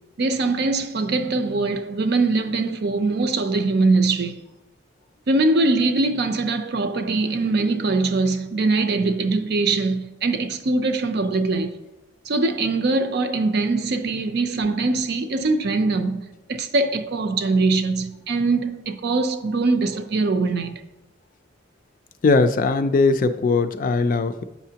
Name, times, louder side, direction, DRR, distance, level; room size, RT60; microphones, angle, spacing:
voice 1, 0.2-4.4 5.3-11.7 12.3-16.2 16.5-20.8, right 3 dB, 60° right, 0.5 m, -22 dB
voice 2, 22.2-24.4, left 3 dB, 45° left, 0.4 m, -19 dB
8.2 x 5.7 x 2.8 m
head